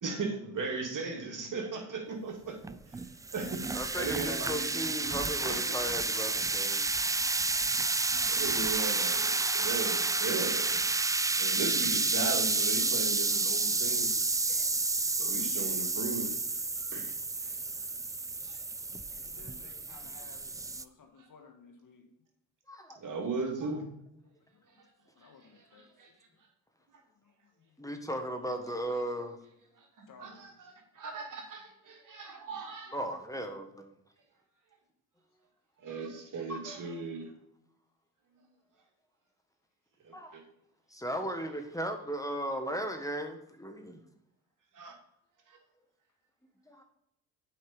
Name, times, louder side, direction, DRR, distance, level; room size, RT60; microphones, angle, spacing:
voice 1, 0.0-2.6 2.9-3.0 3.3-3.6 4.0-5.0 5.5-5.6 7.6-7.7 8.3-10.8 11.4-14.1 14.5-14.6 15.2-16.3 16.8-17.1 17.4-17.5 18.4-18.6 19.9-20.0 23.0-23.8 26.0-26.1 29.8-33.0 35.8-37.3 40.0-40.4 44.7-45.0 45.5-45.6, right 4 dB, 50° right, 1 dB, 2.4 m, -37 dB
sound 1, 2.6-20.8, right 3 dB, 10° right, 0.3 m, -30 dB
voice 2, 3.7-6.8 14.4-14.5 22.7-23.0 27.8-29.4 32.9-33.9 36.5-36.6 40.1-40.4 40.9-44.0 46.7-46.8, equal, 10° left, 5 dB, 1.5 m, -36 dB
voice 3, 8.2-8.8 19.2-22.1 25.2-25.9 30.1-30.5, left 5 dB, 50° left, 5 dB, 1.7 m, -56 dB
7.8 x 5.5 x 5.3 m, 0.78 s
supercardioid pair, 60°, 40 cm